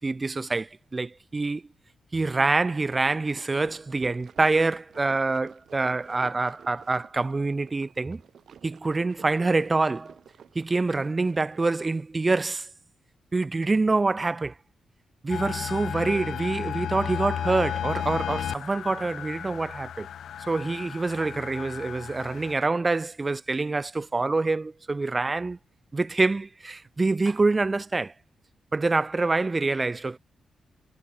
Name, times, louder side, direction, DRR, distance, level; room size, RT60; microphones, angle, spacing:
voice 1, 0.0-1.6 2.1-8.2 8.6-10.2 10.5-12.7 13.3-14.5 15.2-20.1 20.5-25.6 25.9-28.1 28.7-30.2, right 3 dB, 20° right, 1.1 m, -26 dB
sound 1, 3.2-11.9, right 8 dB, 65° right, 6.2 m, -51 dB
sound 2, 15.3-22.5, left 9 dB, 80° left, 1.2 m, -34 dB
wide cardioid pair, 145°, 0 cm